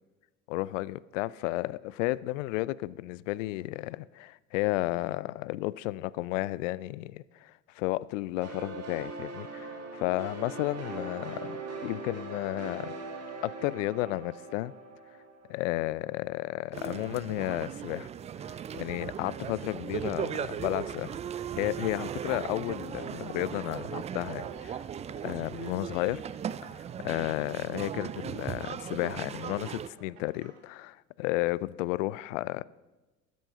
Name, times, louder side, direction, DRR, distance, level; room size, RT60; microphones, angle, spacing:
voice 1, 0.5-13.0 13.4-14.7 15.5-18.1 18.4-24.8 25.2-26.2 26.7-32.6, left 18 dB, 70° left, 0.5 m, -33 dB
sound 1, 8.4-15.9, right 3 dB, 40° right, 2.2 m, -41 dB
sound 2, 16.7-29.9, right 9 dB, 20° right, 0.3 m, -38 dB
sound 3, 21.7-22.5 22.8-27.2 27.9-30.6, right 7 dB, 60° right, 2.8 m, -51 dB
13.0 x 9.4 x 5.6 m
hypercardioid pair, 70°, 39 cm